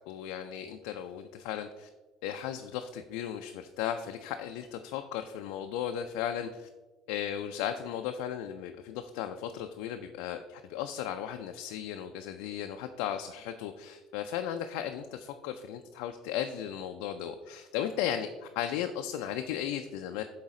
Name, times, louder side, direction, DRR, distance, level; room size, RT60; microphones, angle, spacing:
voice 1, 0.1-1.9 2.2-6.7 7.1-20.2, left 10 dB, 80° left, 6 dB, 0.3 m, -36 dB
7.3 x 3.9 x 3.7 m, 1.2 s
supercardioid pair, 85°, 0 cm